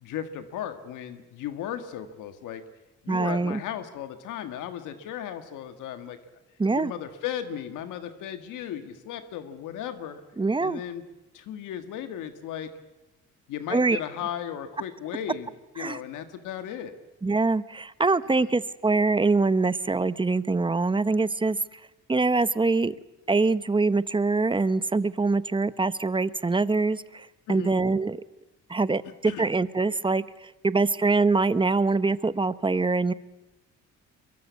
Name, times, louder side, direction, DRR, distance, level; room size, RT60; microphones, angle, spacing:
voice 1, 0.0-2.6 3.0-6.2 6.7-10.2 10.6-11.0 11.3-12.7 13.5-17.0 18.4-18.5 27.5-27.7 29.2-29.5, left 10 dB, 90° left, 9 dB, 1.7 m, -36 dB
voice 2, 3.1-3.6 6.6-6.9 10.4-10.8 13.7-14.0 15.8-16.0 17.2-21.8 22.1-22.9 23.3-28.2 28.7-33.1, right 3 dB, 15° right, 16 dB, 0.9 m, -24 dB
23.0 x 22.0 x 8.3 m, 1.0 s
cardioid pair, 90°, 30 cm